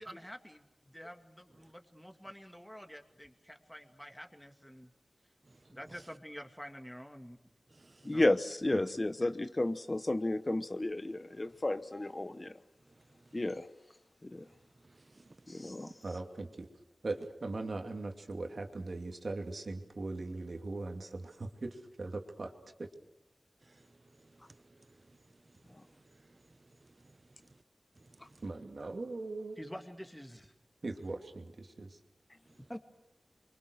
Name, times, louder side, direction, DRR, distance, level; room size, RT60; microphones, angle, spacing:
voice 1, 0.0-4.9 5.7-7.4 8.0-8.3 29.6-30.5 32.7-32.8, equal, 5° left, 2.4 m, -48 dB
voice 2, 5.4-5.8 7.7-8.2 12.9-13.4 14.8-15.7 23.6-27.6 28.0-28.4, right 2 dB, 40° right, 0.8 m, -63 dB
voice 3, 8.0-12.5 13.3-13.7 14.2-14.4 15.5-15.9, left 1 dB, 30° left, 1.0 m, -32 dB
voice 4, 16.0-16.7 17.0-22.5 22.8-22.9 28.4-29.6 30.8-32.0, right 2 dB, 60° right, 2.6 m, -40 dB
28.0 x 24.0 x 6.5 m
wide cardioid pair, 65°, 0 cm